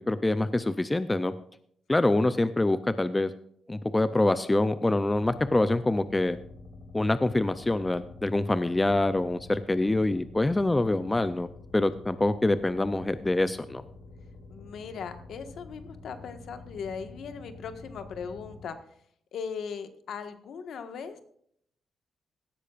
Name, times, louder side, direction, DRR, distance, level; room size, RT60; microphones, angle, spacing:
voice 1, 0.0-1.3 1.9-3.3 3.7-6.4 6.9-11.5 11.7-13.8, left 2 dB, 10° left, 12 dB, 0.5 m, -25 dB
sound 1, 5.1-18.7, left 3 dB, 85° left, 5.2 m, -48 dB
voice 2, 14.5-18.8 19.3-21.2, left 6 dB, 65° left, 8 dB, 1.5 m, -38 dB
17.0 x 13.0 x 2.5 m, 0.68 s
wide cardioid pair, 160°, 0 cm